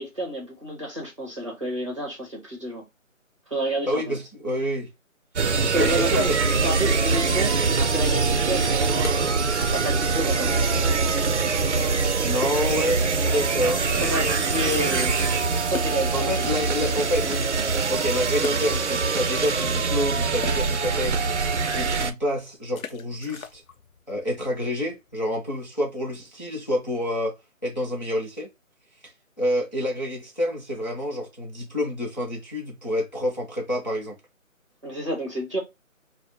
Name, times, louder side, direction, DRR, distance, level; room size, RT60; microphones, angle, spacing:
voice 1, 0.0-2.8 3.5-4.2 5.7-6.3 6.6-9.3 9.7-10.7 14.0-15.2 15.6-16.5 34.8-35.6, right 1 dB, 25° right, 1.0 m, -30 dB
voice 2, 3.9-4.9 5.6-6.4 12.2-14.4 16.1-17.5 17.9-21.2 21.7-23.6 24.1-27.4 27.6-28.5 29.0-29.1 29.4-34.2, equal, 35° left, 0.6 m, -28 dB
sound 1, 5.4-22.1, right 4 dB, 60° right, 0.5 m, -23 dB
sound 2, 8.9-10.2 10.4-10.5 11.1-11.3 11.5-11.6 12.3-13.3 13.7-13.8 15.7-17.0 17.5-17.6 18.3-19.5 19.8-25.3, left 7 dB, 80° left, 0.7 m, -41 dB
3.1 x 2.1 x 4.0 m
figure-of-eight pair, 175°, 41 cm